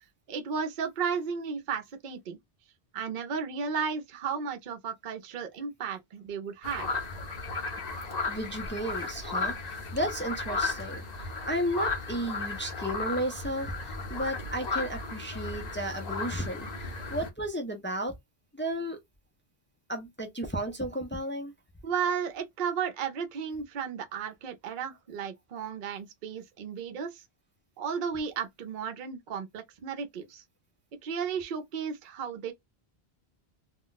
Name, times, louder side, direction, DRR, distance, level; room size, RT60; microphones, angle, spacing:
voice 1, 0.3-2.4 2.9-6.9 21.8-27.2 27.8-30.4 31.0-32.5, right 6 dB, 55° right, 0.7 m, -34 dB
sound 1, 6.6-17.3, left 3 dB, 45° left, 0.7 m, -35 dB
voice 2, 7.5-18.1 18.5-19.0 19.9-21.5, right 1 dB, 15° left, 0.4 m, -34 dB
2.3 x 2.1 x 3.8 m
omnidirectional pair, 1.1 m